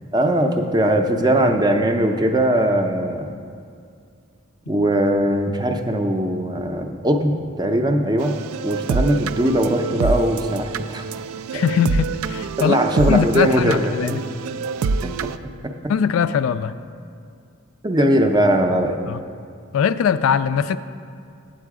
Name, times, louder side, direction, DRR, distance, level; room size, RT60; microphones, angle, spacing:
voice 1, 0.1-3.3 4.7-8.3 8.6-11.1 11.5-11.6 12.6-14.2 15.0-15.1 15.6-15.7 17.8-19.0, right 1 dB, 20° right, 5 dB, 0.5 m, -20 dB
sound 1, 8.2-15.4, right 4 dB, 85° right, 0.3 m, -26 dB
voice 2, 11.5-12.8 13.1-14.2 15.9-16.7 19.1-19.2 19.7-20.8, left 7 dB, 75° left, 13 dB, 0.3 m, -21 dB
8.2 x 7.8 x 4.8 m, 2.3 s
head